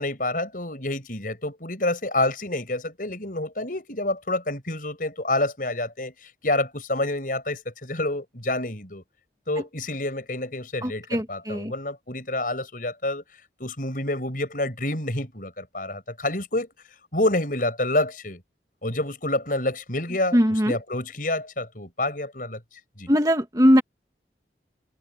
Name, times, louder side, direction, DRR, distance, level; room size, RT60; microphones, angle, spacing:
voice 1, 0.0-9.0 9.5-13.2 13.6-16.7 17.1-18.4 18.8-20.4 20.7-22.6 23.0-23.1, left 2 dB, 50° left, 7.2 m, -28 dB
voice 2, 10.8-11.7 20.3-20.8 23.1-23.8, equal, 20° right, 2.2 m, -20 dB
head